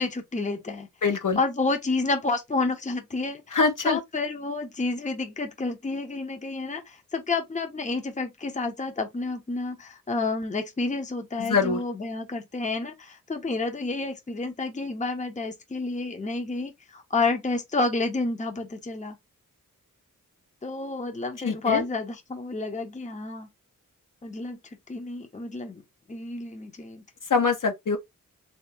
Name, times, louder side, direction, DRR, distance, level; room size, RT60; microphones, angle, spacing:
voice 1, 0.0-0.9 1.4-3.6 3.8-19.2 20.6-23.5 24.2-24.6 24.9-25.8 26.1-27.0, left 3 dB, 20° left, 0.8 m, -30 dB
voice 2, 1.0-1.4 3.5-4.0 11.4-11.8 21.4-21.8 27.3-28.0, left 4 dB, 65° left, 1.1 m, -24 dB
3.3 x 2.8 x 3.4 m
wide cardioid pair, 75°, 34 cm